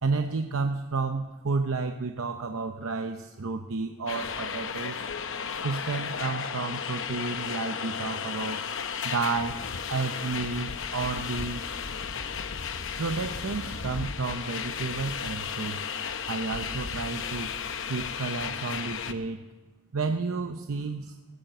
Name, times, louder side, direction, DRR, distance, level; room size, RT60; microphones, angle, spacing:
voice 1, 0.0-5.1 5.6-8.6 9.0-11.7 13.0-15.9 16.3-17.5 17.9-19.4 19.9-21.2, right 4 dB, 65° right, 6 dB, 0.7 m, -31 dB
sound 1, 4.1-19.1, left 6 dB, 60° left, 0.8 m, -34 dB
17.5 x 9.0 x 6.7 m, 1.2 s
head